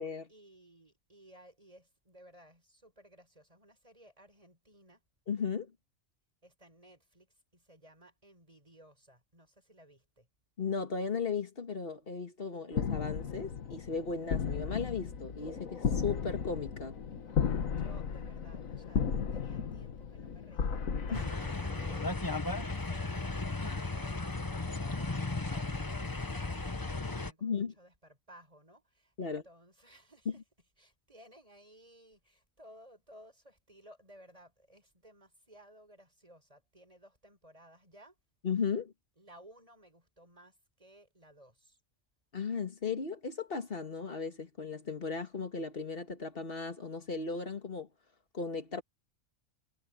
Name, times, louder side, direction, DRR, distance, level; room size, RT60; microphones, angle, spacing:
voice 1, 0.3-5.0 6.4-10.3 17.7-19.1 19.3-20.8 21.1-25.1 25.5-30.3 30.8-38.2 39.2-41.8, equal, 25° right, 7.1 m, -59 dB
voice 2, 5.3-5.7 10.6-17.0 21.1-21.2 27.4-27.7 29.2-29.4 30.3-30.4 38.4-38.9 42.3-47.9 48.3-48.8, left 5 dB, 45° left, 1.9 m, -36 dB
sound 1, 12.7-22.2, left 6 dB, 80° left, 1.7 m, -35 dB
sound 2, 21.1-27.3, left 3 dB, 15° left, 1.0 m, -35 dB
omnidirectional pair, 1.4 m